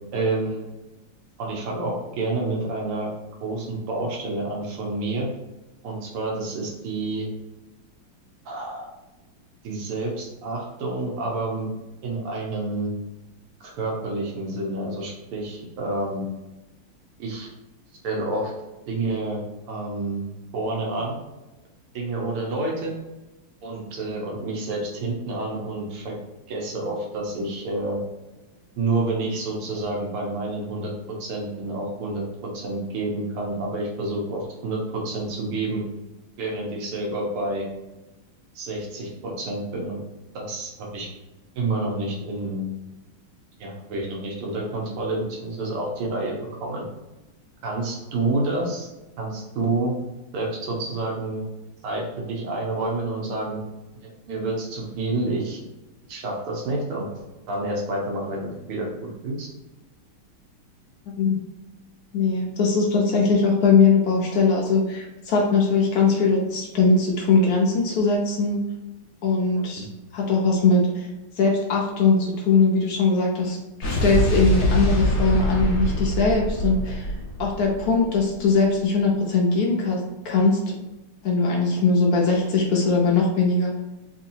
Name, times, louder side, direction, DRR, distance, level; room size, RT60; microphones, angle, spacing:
voice 1, 0.1-0.6 1.4-3.1 3.4-5.3 5.8-7.3 8.5-8.9 9.6-11.7 12.0-12.9 13.6-16.2 17.2-17.5 18.0-18.5 18.9-19.4 19.7-21.2 21.9-23.0 23.6-26.2 26.5-28.0 28.8-35.8 36.4-37.7 38.6-40.0 40.4-41.1 41.6-42.7 43.6-46.9 47.6-48.9 49.2-49.9 50.3-51.5 51.8-53.6 54.0-55.6 56.1-57.1 57.5-59.5 69.8-69.9, right 2 dB, 85° right, -1 dB, 1.8 m, -29 dB
voice 2, 62.1-68.7 69.2-69.9 70.1-71.1 71.3-80.6 81.2-83.8, left 4 dB, 75° left, -1 dB, 0.8 m, -21 dB
Explosion, 73.8-78.2, equal, 45° left, 1.7 m, -24 dB
4.0 x 2.8 x 2.6 m, 1.0 s
omnidirectional pair, 2.3 m